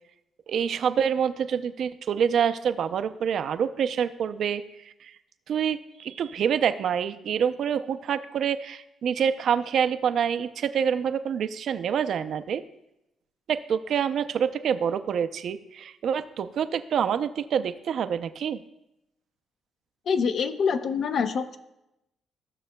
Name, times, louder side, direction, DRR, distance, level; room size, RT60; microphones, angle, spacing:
voice 1, 0.5-4.6 5.5-12.6 13.5-18.6, right 8 dB, 65° right, 11 dB, 0.5 m, -26 dB
voice 2, 20.1-21.6, left 6 dB, 60° left, 9 dB, 0.7 m, -25 dB
15.0 x 6.5 x 2.3 m, 0.86 s
cardioid pair, 90°, 0 cm